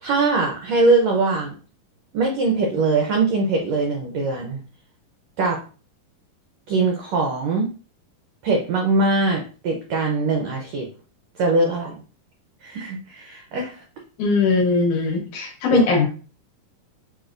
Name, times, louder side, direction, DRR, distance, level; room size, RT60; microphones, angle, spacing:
voice 1, 0.0-1.6 2.1-4.6 5.4-5.6 6.7-7.7 8.4-10.9 11.4-12.0 12.6-13.8 15.7-15.8, right 3 dB, 85° right, 1 dB, 1.5 m, -21 dB
voice 2, 14.2-16.1, left 4 dB, 65° left, -1 dB, 2.3 m, -20 dB
7.6 x 2.7 x 2.5 m, 0.36 s
omnidirectional pair, 4.0 m